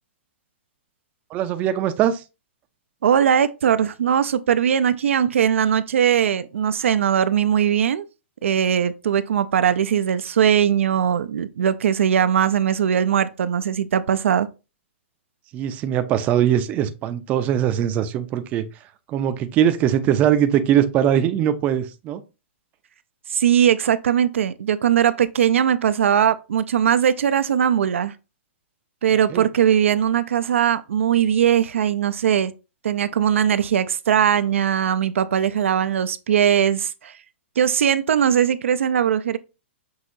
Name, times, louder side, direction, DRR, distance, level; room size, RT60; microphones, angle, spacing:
voice 1, 1.3-2.2 15.5-18.7 19.1-22.2 29.3-29.5, right 10 dB, 20° right, 0.4 m, -21 dB
voice 2, 3.0-8.0 8.4-14.5 23.3-28.1 29.0-32.5 32.8-37.2 37.6-39.4, right 9 dB, 85° right, 0.4 m, -20 dB
6.2 x 2.7 x 2.6 m
hypercardioid pair, 150°, 7 cm